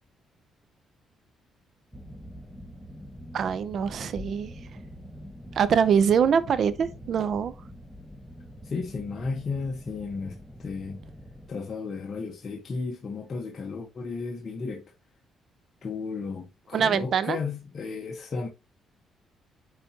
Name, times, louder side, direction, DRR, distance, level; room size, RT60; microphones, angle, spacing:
sound 1, 1.9-11.5, equal, 5° left, 1.2 m, -44 dB
voice 1, 3.3-4.5 5.5-7.5 16.7-17.4, right 7 dB, 60° right, 0.7 m, -24 dB
voice 2, 8.6-11.0 11.5-14.8 15.8-18.5, left 4 dB, 45° left, 1.2 m, -34 dB
9.6 x 4.3 x 2.9 m
cardioid pair, 90°, 0 cm